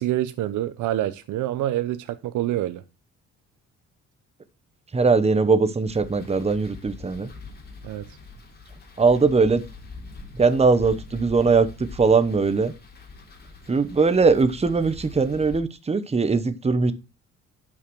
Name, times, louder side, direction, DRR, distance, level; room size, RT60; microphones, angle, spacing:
voice 1, 0.0-2.8 7.8-8.0, right 13 dB, 80° right, 0.8 m, -26 dB
voice 2, 4.9-7.3 9.0-9.6 10.3-12.7 13.7-16.9, right 4 dB, 20° right, 1.1 m, -20 dB
sound 1, 5.9-15.6, left 3 dB, 35° left, 3.1 m, -43 dB
10.5 x 6.2 x 4.7 m
cardioid pair, 90°, 30 cm